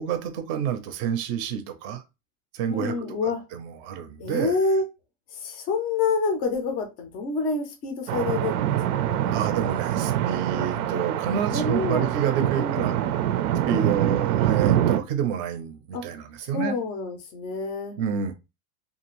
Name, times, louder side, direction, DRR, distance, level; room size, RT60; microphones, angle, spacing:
voice 1, 0.0-2.0 2.5-4.6 9.3-12.9 13.7-16.8 18.0-18.3, right 8 dB, 40° right, 0.5 m, -29 dB
voice 2, 2.7-3.4 4.2-4.8 5.3-9.6 11.5-12.1 12.5-12.9 13.7-14.2 15.9-16.0 16.5-18.0, left 4 dB, 20° left, 0.3 m, -28 dB
sound 1, 8.1-15.0, right 11 dB, 90° right, 0.6 m, -25 dB
2.7 x 2.5 x 2.9 m
supercardioid pair, 155°, 43 cm